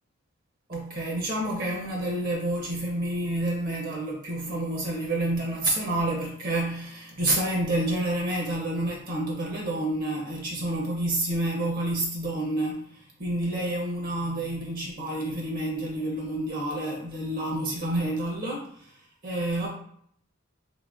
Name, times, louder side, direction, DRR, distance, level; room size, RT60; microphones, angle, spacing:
voice 1, 0.7-19.7, right 1 dB, 45° right, -1 dB, 0.6 m, -29 dB
3.7 x 2.9 x 2.4 m, 0.64 s
head